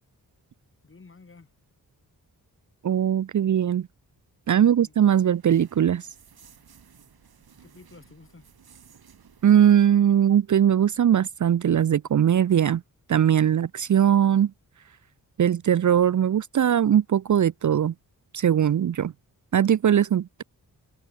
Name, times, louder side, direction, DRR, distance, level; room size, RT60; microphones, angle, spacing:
voice 1, 0.8-1.5 4.5-4.9 7.4-8.5, left 4 dB, 35° left, 7.2 m, -52 dB
voice 2, 2.8-3.9 4.5-6.1 9.4-12.8 13.1-14.5 15.4-17.9 18.3-19.1 19.5-20.4, right 9 dB, 55° right, 0.6 m, -20 dB
sound 1, 3.9-9.9, right 7 dB, 80° right, 3.8 m, -56 dB
wide cardioid pair, 155°, 37 cm